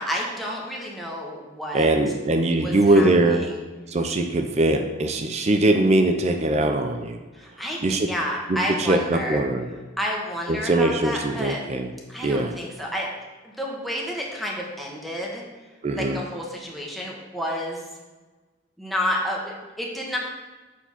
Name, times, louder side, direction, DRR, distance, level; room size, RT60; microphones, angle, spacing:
voice 1, 0.0-1.9 2.6-3.6 7.3-9.4 10.0-11.6 12.1-13.1 13.4-15.4 15.9-17.8 18.8-20.2, equal, ahead, -3 dB, 1.3 m, -30 dB
voice 2, 1.7-3.4 3.9-7.2 7.8-8.1 8.5-9.7 10.5-11.9 12.2-12.6 15.8-16.2, right 2 dB, 35° right, 5 dB, 0.5 m, -21 dB
7.1 x 4.5 x 5.6 m, 1.3 s
head